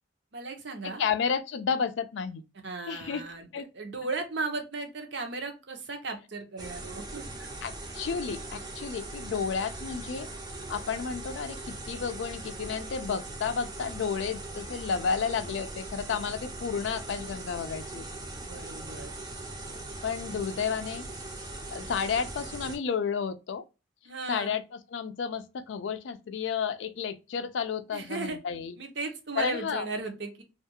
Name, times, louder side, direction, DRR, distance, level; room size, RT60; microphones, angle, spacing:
voice 1, 0.3-1.0 2.6-7.5 18.4-19.1 24.0-24.5 27.9-28.4 28.8-30.4, right 3 dB, 60° right, 0.7 m, -36 dB
voice 2, 0.8-2.4 2.9-3.2 3.5-3.7 7.6-10.3 10.7-18.0 20.0-21.1 21.7-23.6 24.3-28.8 29.4-29.9, left 6 dB, 65° left, 0.4 m, -32 dB
sound 1, 6.6-22.8, right 2 dB, 20° right, 0.5 m, -40 dB
2.4 x 2.2 x 2.7 m
head